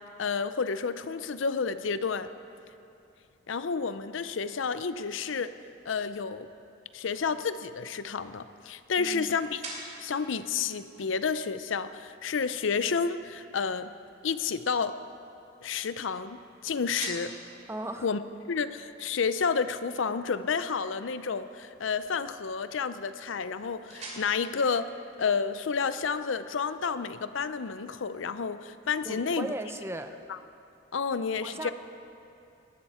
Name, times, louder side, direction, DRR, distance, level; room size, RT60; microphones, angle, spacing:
voice 1, 0.2-2.3 3.5-5.5 5.9-6.5 6.9-9.6 10.0-13.9 14.2-15.0 15.6-17.3 18.0-18.2 18.5-24.9 25.2-29.5 30.3-30.4 30.9-31.7, left 5 dB, 75° left, 12 dB, 0.6 m, -30 dB
sound 1, 6.9-25.7, right 2 dB, 35° right, 2.8 m, -50 dB
voice 2, 9.0-9.3 17.7-18.1 29.0-30.2 31.4-31.7, right 1 dB, 15° right, 7 dB, 0.5 m, -37 dB
18.5 x 13.0 x 4.3 m, 2.6 s
head